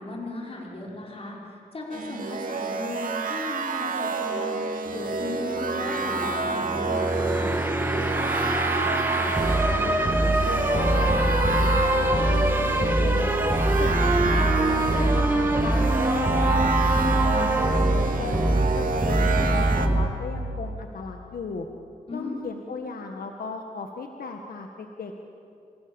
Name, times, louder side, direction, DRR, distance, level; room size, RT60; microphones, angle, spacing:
voice 1, 0.0-1.4 1.7-7.5 17.3-17.5 22.1-22.3, left 2 dB, 40° left, -2 dB, 5.5 m, -36 dB
sound 1, 1.9-19.9, right 4 dB, 65° right, 2.5 m, -29 dB
sound 2, 4.9-20.1, right 1 dB, 15° right, 1.9 m, -24 dB
voice 2, 8.7-13.4 13.8-16.6 17.0-21.7 22.1-25.1, left 4 dB, 80° left, 3 dB, 1.8 m, -36 dB
29.5 x 27.5 x 7.2 m, 2.6 s
wide cardioid pair, 105°, 15 cm